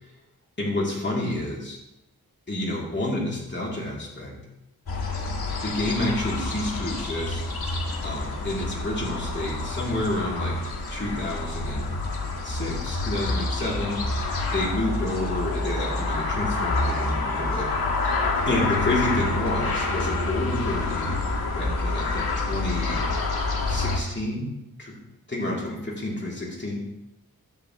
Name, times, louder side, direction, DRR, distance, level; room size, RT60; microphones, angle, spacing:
voice 1, 0.6-1.8 2.5-4.3 5.5-7.4 8.0-10.6 10.9-11.9 12.4-13.9 14.5-17.7 18.5-23.0 23.7-25.0 25.3-26.8, left 1 dB, 30° left, -4 dB, 2.7 m, -29 dB
sound 1, 4.9-24.0, left 3 dB, 80° left, 1.7 m, -28 dB
12.0 x 7.2 x 2.9 m, 0.91 s
wide cardioid pair, 100°, 37 cm